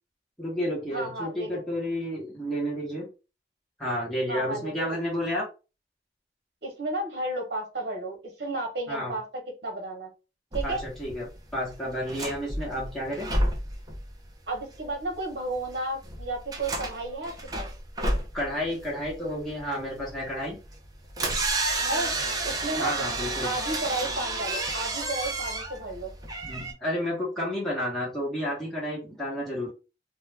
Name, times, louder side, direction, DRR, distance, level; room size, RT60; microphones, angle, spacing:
voice 1, 0.4-3.1 3.8-5.5 8.9-9.1 10.6-11.3 11.5-13.3 18.3-20.6 22.8-23.5 26.4-29.7, equal, 5° left, -6 dB, 1.1 m, -31 dB
voice 2, 0.9-1.6 4.3-5.0 6.6-10.1 10.5-10.8 14.5-17.7 21.9-22.1 22.4-22.9 23.4-26.1, right 2 dB, 65° right, 2 dB, 1.2 m, -33 dB
sound 1, 10.5-26.7, right 2 dB, 20° right, 0.6 m, -31 dB
2.6 x 2.3 x 3.3 m, 0.31 s
head